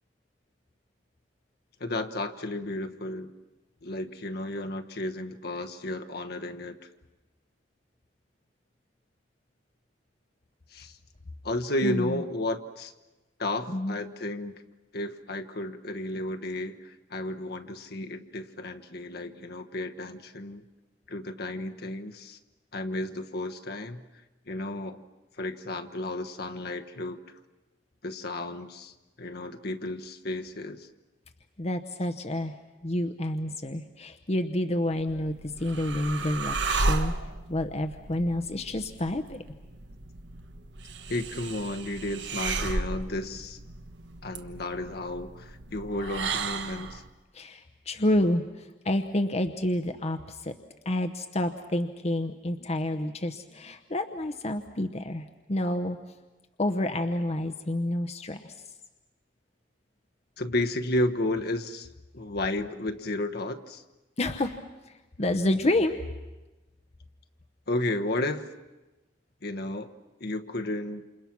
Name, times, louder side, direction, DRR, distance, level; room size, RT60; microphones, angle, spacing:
voice 1, 1.8-3.3 3.8-6.8 10.7-11.0 11.4-12.9 13.4-14.5 14.9-20.6 21.1-22.4 22.7-24.0 24.5-25.0 25.4-27.2 28.0-30.9 41.1-43.6 44.2-47.0 60.4-61.9 62.1-63.8 67.7-68.5 69.4-69.9 70.2-71.0, left 1 dB, 60° left, 6 dB, 1.2 m, -32 dB
voice 2, 11.8-12.2 13.7-14.0 31.6-32.5 32.8-37.1 37.5-39.4 47.3-50.5 50.8-56.0 56.6-58.5 64.2-64.6 64.9-66.0, left 1 dB, 35° left, 7 dB, 0.9 m, -29 dB
sound 1, 35.0-47.1, right 3 dB, 75° right, 1.3 m, -34 dB
28.5 x 27.5 x 6.1 m, 1.1 s
head